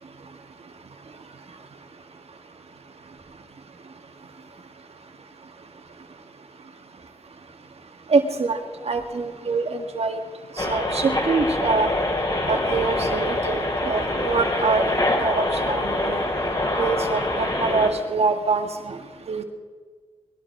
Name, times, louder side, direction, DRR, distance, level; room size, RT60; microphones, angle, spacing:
voice 1, 8.1-8.6 8.9-10.2 10.6-11.9 12.5-16.2 16.8-19.0 19.3-19.4, right 4 dB, 70° right, 5 dB, 1.8 m, -24 dB
sound 1, 10.6-17.9, left 1 dB, 40° left, 3.4 m, -25 dB
20.5 x 11.5 x 4.8 m, 1.5 s
cardioid pair, 45°, 11 cm